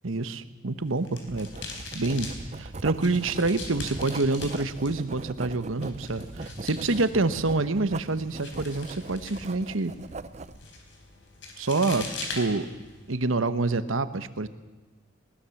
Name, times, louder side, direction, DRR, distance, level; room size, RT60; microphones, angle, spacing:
voice 1, 0.0-1.5 1.9-2.3 2.6-9.9 11.6-12.7 13.1-14.5, right 3 dB, 85° right, 12 dB, 1.1 m, -27 dB
sound 1, 0.8-13.1, left 3 dB, 65° left, 4.0 m, -42 dB
Writing, 1.3-10.6, right 3 dB, 35° right, 0.7 m, -40 dB
20.5 x 19.0 x 7.2 m, 1.2 s
head